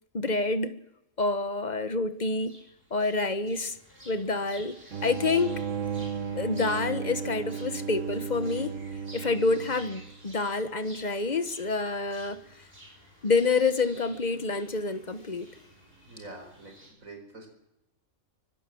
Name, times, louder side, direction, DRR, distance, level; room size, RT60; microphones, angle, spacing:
voice 1, 0.1-0.8 1.2-2.6 2.9-3.8 4.0-5.6 6.4-8.8 9.1-12.4 13.2-15.5, left 3 dB, 35° left, 11 dB, 1.3 m, -28 dB
sound 1, 2.4-16.9, right 1 dB, 45° right, 7.3 m, -52 dB
sound 2, 4.9-10.3, right 6 dB, 70° right, 1.3 m, -35 dB
voice 2, 16.0-17.5, right 2 dB, 90° right, 4 dB, 5.1 m, -46 dB
24.5 x 18.0 x 7.8 m, 0.92 s
omnidirectional pair, 1.4 m